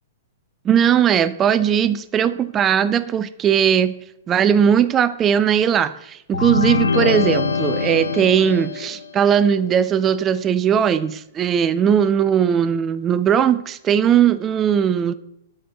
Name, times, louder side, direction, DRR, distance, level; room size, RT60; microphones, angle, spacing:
voice 1, 0.6-4.0 4.3-15.1, right 8 dB, 20° right, 0.3 m, -18 dB
sound 1, 6.3-9.1, left 4 dB, 70° left, 0.6 m, -23 dB
12.5 x 4.2 x 3.7 m
figure-of-eight pair, 105°, 0 cm